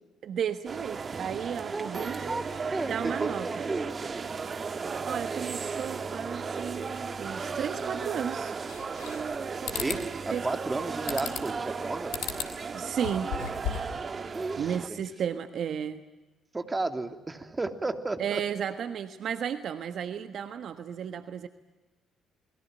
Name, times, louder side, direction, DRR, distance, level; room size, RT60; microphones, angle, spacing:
voice 1, 0.2-2.3 2.9-3.7 5.0-8.5 10.3-10.5 12.7-13.3 14.6-16.0 18.2-21.5, right 8 dB, 60° right, 10 dB, 1.3 m, -33 dB
sound 1, 0.7-14.9, right 5 dB, 40° right, 1.7 m, -35 dB
voice 2, 1.7-4.2 9.8-12.1 14.3-15.0 16.5-18.4, right 2 dB, 25° right, 7 dB, 2.9 m, -33 dB
sound 2, 8.7-9.3 9.7-10.0 11.1-11.6 12.1-12.5 12.9-14.0, left 8 dB, 75° left, 3.1 m, -35 dB
29.5 x 22.0 x 9.1 m, 1.1 s
hypercardioid pair, 50°, 0 cm